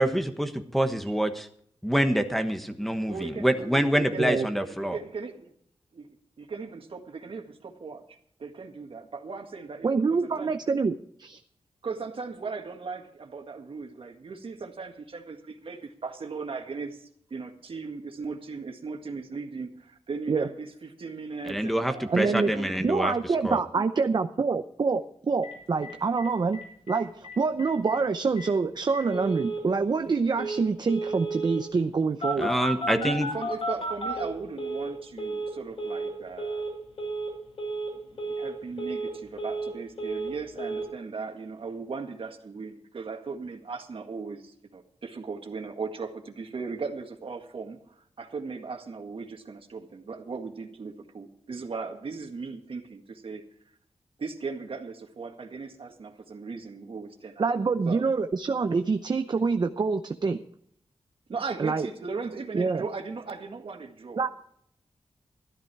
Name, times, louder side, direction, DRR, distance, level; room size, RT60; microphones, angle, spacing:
voice 1, 0.0-1.5 1.8-5.0 21.5-23.1 23.4-23.6 32.4-33.3, right 1 dB, ahead, 5 dB, 1.2 m, -26 dB
voice 2, 3.1-5.5 5.9-6.1 6.4-10.5 11.8-22.8 23.3-23.9 32.7-36.7 38.1-53.4 54.2-57.5 57.9-58.0 61.3-64.3, right 4 dB, 60° right, 5 dB, 1.8 m, -38 dB
voice 3, 9.8-11.4 20.3-20.5 22.1-22.5 22.8-32.5 57.4-60.4 61.6-61.9 62.5-62.8 64.2-64.3, right 4 dB, 45° right, 8 dB, 0.7 m, -26 dB
Telephone, 25.4-25.5 25.8-25.9 26.2-26.3 26.5-27.0 27.2-27.3 27.6-28.0 28.4-28.5 28.9-29.6 30.4-30.6 30.9-31.6 32.2-34.9 35.2-35.5 35.8-36.1 36.4-36.7 37.0-37.3 37.6-37.9 38.2-38.5 38.8-39.7 40.0-40.3 40.6-40.8, right 2 dB, 70° left, 6.8 m, -32 dB
13.5 x 12.0 x 4.6 m, 0.67 s
wide cardioid pair, 105°, 10 cm